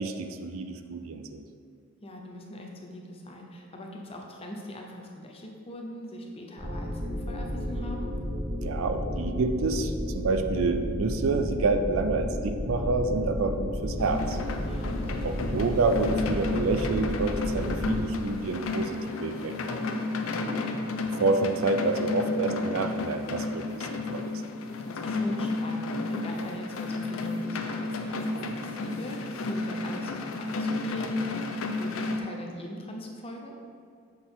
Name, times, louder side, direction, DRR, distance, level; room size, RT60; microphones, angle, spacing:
voice 1, 0.0-1.4 8.6-14.4 15.2-19.8 21.2-24.3, right 3 dB, 80° right, 7 dB, 0.4 m, -28 dB
voice 2, 2.0-8.1 14.7-15.3 20.2-20.7 24.9-33.5, equal, 30° left, 1 dB, 0.7 m, -40 dB
sound 1, 6.6-18.0, left 1 dB, 15° right, 1.4 m, -32 dB
sound 2, 14.0-32.2, left 3 dB, 75° left, 0.5 m, -32 dB
6.8 x 4.1 x 3.8 m, 2.2 s
head